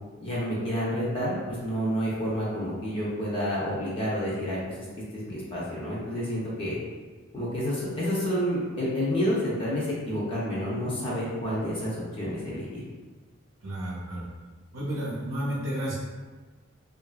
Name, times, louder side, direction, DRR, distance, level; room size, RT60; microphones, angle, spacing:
voice 1, 0.2-4.9 5.1-6.8 7.3-12.8, equal, 25° left, -7 dB, 0.6 m, -29 dB
voice 2, 13.6-14.3 14.7-15.9, equal, 85° right, -7 dB, 0.6 m, -31 dB
2.8 x 2.5 x 2.3 m, 1.3 s
head